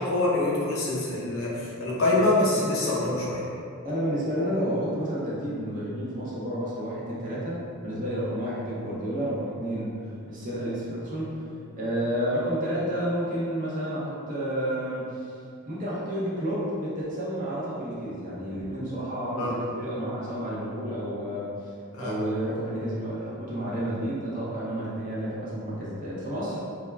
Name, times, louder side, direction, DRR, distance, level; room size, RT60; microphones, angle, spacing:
voice 1, 0.0-3.4 19.4-19.5 21.9-22.1, left 2 dB, 70° left, -6 dB, 0.6 m, -25 dB
voice 2, 3.8-11.4 11.8-15.3 15.7-21.5 22.0-26.6, equal, 40° right, -7 dB, 0.6 m, -30 dB
2.2 x 2.1 x 3.2 m, 2.4 s
head